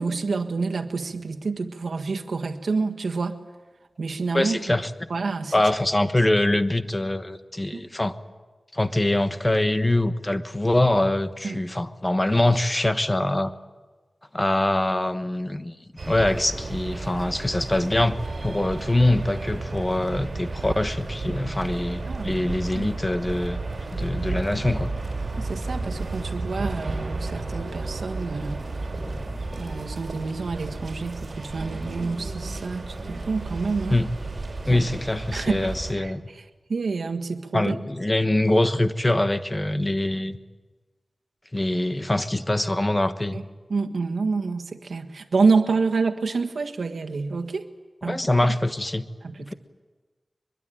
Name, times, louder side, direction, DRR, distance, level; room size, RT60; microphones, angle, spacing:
voice 1, 0.0-3.4 4.0-4.8 5.1-5.5 7.7-7.8 11.4-11.6 22.1-22.4 22.7-22.9 25.4-28.7 29.6-34.0 34.7-34.9 35.3-35.7 36.0-36.4 36.7-37.7 43.3-43.4 43.7-47.7 48.0-48.2 49.4-49.5, right 4 dB, 90° right, 5 dB, 1.6 m, -27 dB
voice 2, 4.3-5.1 5.5-8.2 8.7-13.5 14.3-15.7 16.0-23.6 23.9-24.9 33.9-34.1 34.6-36.2 37.5-40.4 41.5-43.4 48.0-49.1 49.4-49.5, left 1 dB, 20° left, 10 dB, 1.2 m, -24 dB
sound 1, 16.0-35.9, right 3 dB, 60° right, 6.0 m, -32 dB
23.0 x 23.0 x 9.1 m, 1.3 s
wide cardioid pair, 80°, 0 cm